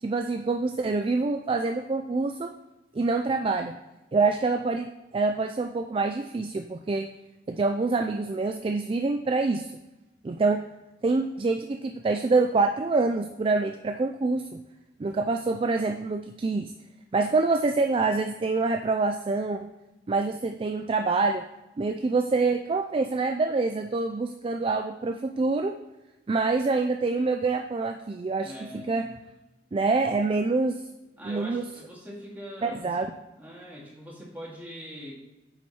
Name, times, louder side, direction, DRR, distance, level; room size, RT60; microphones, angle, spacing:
voice 1, 0.0-2.5 2.9-3.7 4.1-7.1 7.5-9.7 10.2-10.6 11.0-14.6 15.0-16.7 17.1-19.6 20.1-21.4 21.8-25.7 26.3-29.1 29.7-30.8 31.2-31.7 32.6-33.1, right 3 dB, 30° right, 5 dB, 0.3 m, -26 dB
voice 2, 28.4-29.1 31.2-33.0 33.4-35.3, equal, 10° right, -4 dB, 2.1 m, -42 dB
9.0 x 4.4 x 4.3 m, 1.0 s
head